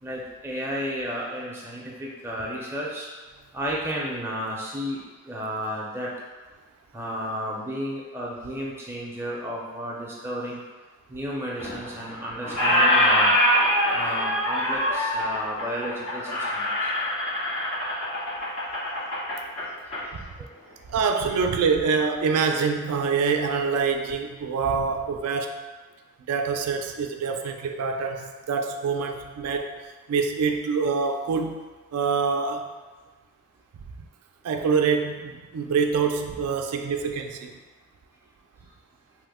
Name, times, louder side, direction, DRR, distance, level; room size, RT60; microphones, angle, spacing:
voice 1, 0.0-3.1 3.5-6.1 6.9-10.6 11.1-13.4 13.9-16.9 20.4-20.5, equal, 10° right, -4 dB, 0.4 m, -32 dB
Squeak, 11.6-12.1 12.4-20.0, left 1 dB, 85° left, 1.5 m, -24 dB
voice 2, 20.9-25.6 26.3-29.8 30.1-31.6 31.9-32.7 34.4-37.5, right 5 dB, 90° right, 5 dB, 0.3 m, -25 dB
3.0 x 2.1 x 3.4 m, 1.3 s
head